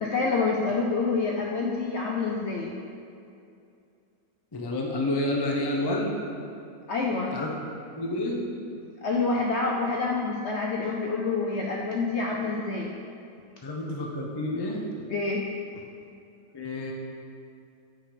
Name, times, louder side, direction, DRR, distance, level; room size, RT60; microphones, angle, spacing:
voice 1, 0.0-2.7 6.9-7.3 9.0-12.9 15.1-15.4, left 3 dB, 70° left, -1 dB, 0.7 m, -27 dB
voice 2, 4.5-6.2 7.3-7.5 8.0-8.5 13.6-14.9 16.5-16.9, left 1 dB, 40° left, -1 dB, 0.3 m, -29 dB
8.5 x 3.8 x 5.0 m, 2.5 s
omnidirectional pair, 1.7 m